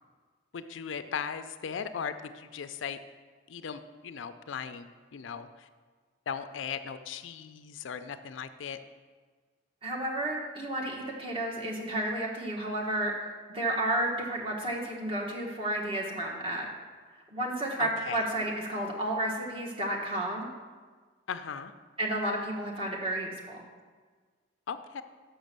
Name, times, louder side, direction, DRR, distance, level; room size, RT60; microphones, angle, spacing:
voice 1, 0.5-3.0 3.5-4.9 5.1-5.7 6.3-8.8 17.8-18.2 21.3-21.7 24.7-25.0, left 7 dB, 80° left, 10 dB, 0.4 m, -38 dB
voice 2, 9.8-13.1 13.5-16.7 17.3-20.5 22.0-23.6, right 1 dB, 30° right, -2 dB, 1.4 m, -32 dB
6.2 x 6.2 x 6.6 m, 1.5 s
head